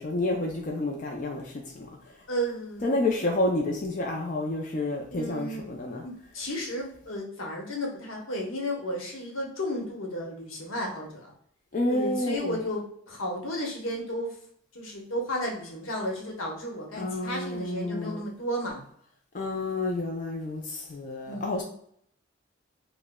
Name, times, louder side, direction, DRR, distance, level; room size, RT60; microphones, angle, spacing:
voice 1, 0.0-2.2 2.8-6.1 11.7-12.6 17.0-18.2 19.3-21.6, left 2 dB, 40° left, 0.4 m, -29 dB
voice 2, 2.3-2.9 5.1-5.6 6.0-11.3 11.9-14.4 14.7-18.8 21.3-21.5, equal, 85° left, 0.9 m, -33 dB
4.8 x 2.1 x 2.2 m
head